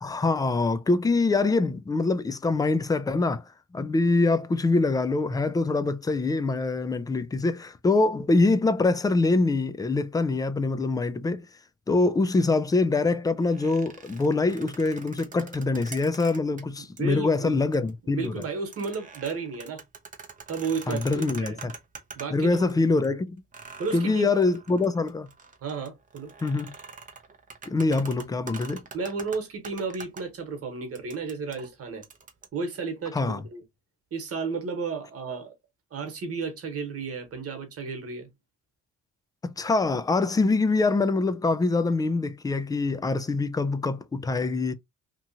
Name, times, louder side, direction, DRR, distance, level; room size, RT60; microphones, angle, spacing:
voice 1, 0.0-3.4 3.7-11.4 11.9-18.4 20.9-21.7 22.3-23.4 23.9-25.3 26.4-26.8 27.7-28.8 33.1-33.5 39.4-44.7, left 3 dB, 15° left, 0.3 m, -24 dB
sound 1, 13.4-16.6 17.0-17.1 17.6-17.9 18.2-22.7 23.0-23.1 23.5-30.2 31.0-32.5, right 5 dB, 25° right, 0.6 m, -45 dB
voice 2, 17.0-17.6 18.0-19.8 20.5-21.6 22.1-22.8 23.8-24.3 25.6-26.3 28.9-32.0 32.5-33.6 34.1-35.5 35.9-38.3, right 4 dB, 50° right, 1.3 m, -33 dB
3.0 x 2.4 x 2.7 m
cardioid pair, 90°, 30 cm